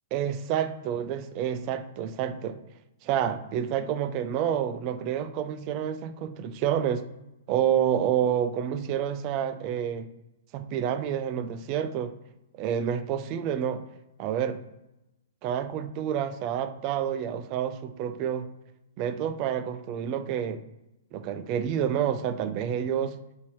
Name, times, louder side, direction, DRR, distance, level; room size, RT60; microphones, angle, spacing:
voice 1, 0.1-2.6 3.0-7.0 7.5-10.1 10.5-12.1 12.6-13.8 14.2-14.6 15.4-18.4 19.0-20.6 21.1-23.2, right 9 dB, 40° right, 10 dB, 0.4 m, -28 dB
4.1 x 2.8 x 4.6 m, 0.92 s
figure-of-eight pair, 110°, 0 cm